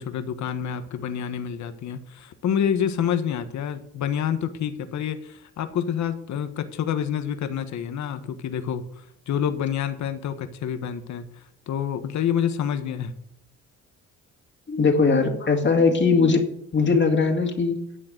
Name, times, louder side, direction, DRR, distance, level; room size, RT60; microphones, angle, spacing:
voice 1, 0.0-13.1, left 8 dB, 70° left, 9 dB, 1.3 m, -28 dB
voice 2, 14.7-16.4 16.7-17.8, left 4 dB, 40° left, 2 dB, 2.4 m, -20 dB
11.5 x 7.7 x 8.0 m, 0.73 s
cardioid pair, 90°, 30 cm